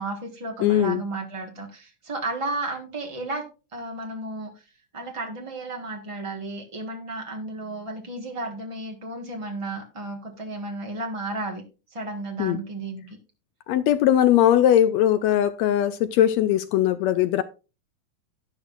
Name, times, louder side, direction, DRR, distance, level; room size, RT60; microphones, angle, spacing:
voice 1, 0.0-3.4 3.7-4.5 4.9-11.6 11.9-13.2, right 2 dB, 55° right, 0.3 m, -33 dB
voice 2, 0.6-1.0 12.4-12.6 13.7-17.4, left 11 dB, 80° left, 1.6 m, -20 dB
11.0 x 11.0 x 2.5 m
omnidirectional pair, 3.5 m